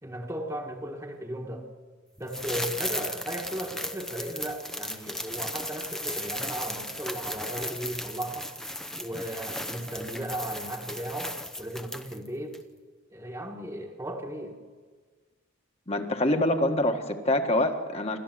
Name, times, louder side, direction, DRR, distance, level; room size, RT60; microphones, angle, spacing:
voice 1, 0.0-1.7 2.2-8.5 9.0-12.6 13.1-14.6, right 1 dB, 15° right, 1 dB, 1.5 m, -36 dB
sound 1, 2.3-12.3 12.5-12.6, left 1 dB, ahead, 0.7 m, -36 dB
voice 2, 15.9-18.2, left 1 dB, 30° left, 5 dB, 1.6 m, -25 dB
27.5 x 13.0 x 7.7 m, 1.5 s
head